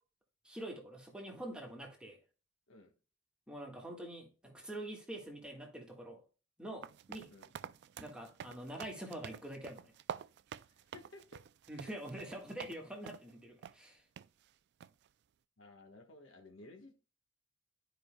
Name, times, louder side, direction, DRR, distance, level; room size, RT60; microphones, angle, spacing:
voice 1, 0.4-2.2 3.5-6.2 6.6-7.3 8.0-9.9 11.7-14.0, right 1 dB, 5° right, 1.6 m, -45 dB
sound 1, 6.8-12.8 13.1-13.3 13.6-13.7 14.2-14.3 14.8-15.1, right 8 dB, 60° right, 0.3 m, -48 dB
voice 2, 10.9-11.4 15.6-16.9, left 2 dB, 75° left, 1.3 m, -55 dB
12.5 x 5.0 x 2.2 m
head